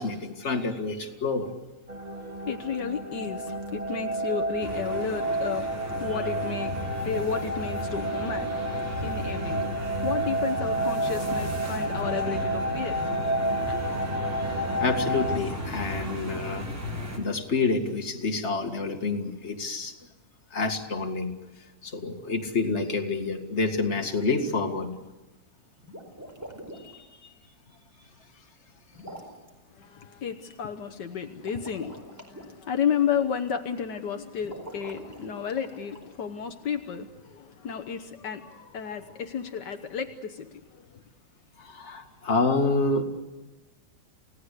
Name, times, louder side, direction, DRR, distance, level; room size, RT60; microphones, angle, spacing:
voice 1, 0.0-1.5 14.4-16.7 17.2-20.0 20.5-21.3 21.8-24.9 26.7-27.1 41.6-43.0, left 3 dB, 40° left, 2.3 m, -28 dB
sound 1, 1.9-15.4, right 1 dB, 25° right, 1.4 m, -30 dB
voice 2, 2.1-13.0 13.7-14.1 29.7-41.0, left 7 dB, 75° left, 1.7 m, -33 dB
sound 2, 4.6-17.2, equal, 40° right, 4.1 m, -35 dB
sound 3, 25.8-27.0 28.9-29.5 31.3-32.4 34.4-36.1, equal, 10° right, 4.4 m, -44 dB
29.0 x 17.5 x 8.3 m
omnidirectional pair, 1.9 m